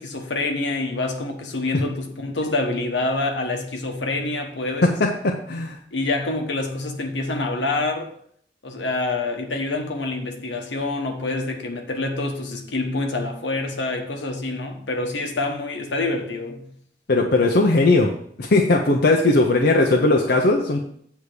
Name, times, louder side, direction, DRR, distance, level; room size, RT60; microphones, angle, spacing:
voice 1, 0.0-5.0 5.5-5.6 5.9-8.1 8.6-16.7, left 2 dB, 80° left, 1.2 m, -26 dB
voice 2, 5.0-5.8 17.1-18.1 18.4-20.8, left 2 dB, 60° left, 0.7 m, -18 dB
8.1 x 3.6 x 6.6 m
head